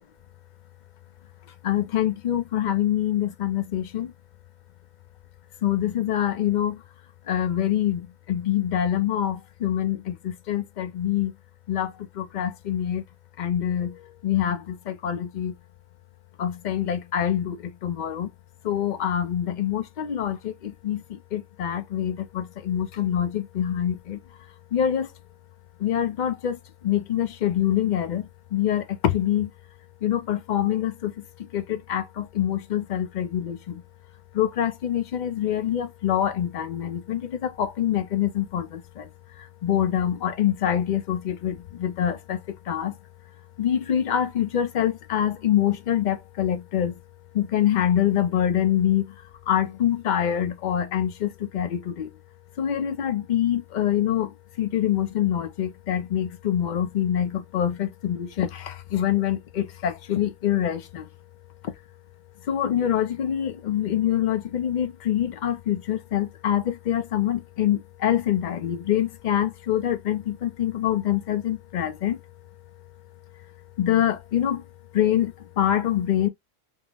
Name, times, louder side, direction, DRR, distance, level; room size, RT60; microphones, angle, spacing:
voice 1, 1.6-4.1 5.6-6.8 7.3-11.3 11.7-13.0 13.4-15.5 16.4-18.3 18.6-24.2 24.7-25.1 25.8-29.5 30.0-33.8 34.3-39.1 39.4-42.9 43.6-46.9 47.3-49.1 49.5-52.1 52.6-61.1 61.6-61.7 62.5-72.2 73.8-74.6 74.9-76.3, left 10 dB, 55° left, 0.6 m, -25 dB
3.6 x 2.0 x 3.3 m
omnidirectional pair, 1.1 m